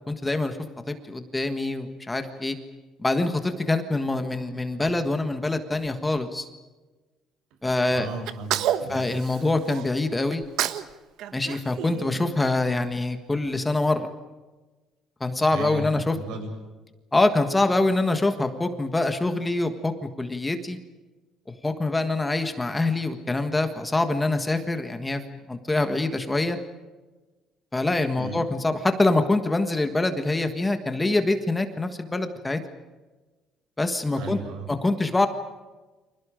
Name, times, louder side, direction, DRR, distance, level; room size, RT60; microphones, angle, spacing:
voice 1, 0.1-0.6 0.9-2.6 3.0-6.5 7.6-8.1 8.9-10.4 11.3-14.1 15.2-16.1 17.1-20.8 21.5-25.2 25.5-26.6 27.7-32.6 33.8-34.4 34.7-35.3, left 2 dB, 10° left, 7 dB, 1.6 m, -25 dB
voice 2, 7.9-9.0 15.5-16.5 28.2-28.4 34.2-34.7, right 3 dB, 90° right, 5 dB, 7.8 m, -35 dB
Sneeze, 8.3-9.9 10.3-10.9 11.2-12.6, right 11 dB, 65° right, 1.3 m, -29 dB
30.0 x 26.5 x 5.1 m, 1.2 s
cardioid pair, 180°, 0 cm